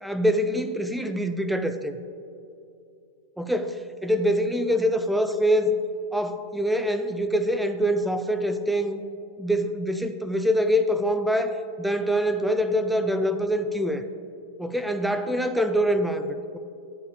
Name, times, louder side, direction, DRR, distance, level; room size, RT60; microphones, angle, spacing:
voice 1, 0.0-1.9 3.4-5.8 6.1-9.0 9.4-14.0 14.6-16.6, equal, ahead, 9 dB, 0.4 m, -25 dB
11.5 x 7.0 x 2.3 m, 2.7 s
figure-of-eight pair, 90°, 0 cm